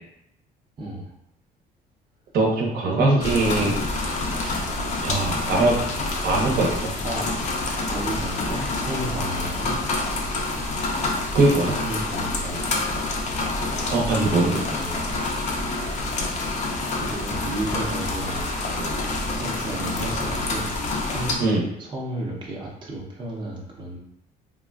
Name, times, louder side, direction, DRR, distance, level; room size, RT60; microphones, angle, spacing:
voice 1, 0.8-1.1 2.8-3.8 7.0-7.2 7.9-9.8 11.3-12.8 14.0-15.1 16.8-18.5 19.3-20.7 21.0-21.4 21.8-24.0, right 1 dB, 30° right, -3 dB, 0.7 m, -32 dB
voice 2, 2.3-3.8 4.4-4.6 5.0-5.8 6.2-6.9 11.3-11.7 13.9-14.5 18.8-19.0 21.4-21.6, right 2 dB, 65° right, -2 dB, 0.9 m, -21 dB
sound 1, 3.2-21.3, left 2 dB, 45° left, 0.6 m, -27 dB
3.6 x 2.3 x 2.3 m, 0.78 s
cardioid pair, 110°, 17 cm